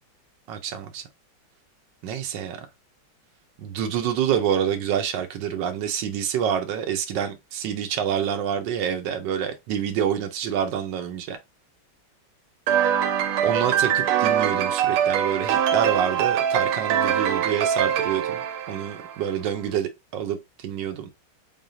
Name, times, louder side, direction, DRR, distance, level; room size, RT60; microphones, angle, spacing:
voice 1, 0.5-1.0 2.0-2.7 3.6-11.4 13.4-18.4 18.7-21.1, right 9 dB, 65° right, 1.3 m, -27 dB
sound 1, 12.7-19.3, right 9 dB, 85° right, 1.5 m, -23 dB
3.8 x 3.6 x 2.7 m
omnidirectional pair, 2.3 m